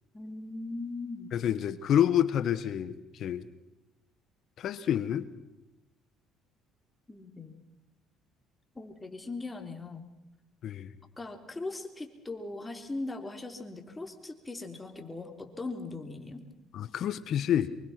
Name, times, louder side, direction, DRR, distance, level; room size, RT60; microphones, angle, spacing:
voice 1, 0.1-1.3 7.1-7.6 8.8-10.1 11.2-16.5, left 2 dB, 15° left, 6 dB, 3.5 m, -39 dB
voice 2, 1.3-3.5 4.6-5.3 10.6-10.9 16.7-17.7, left 10 dB, 60° left, 14 dB, 1.2 m, -28 dB
25.0 x 23.5 x 5.9 m, 0.99 s
supercardioid pair, 90°, 0 cm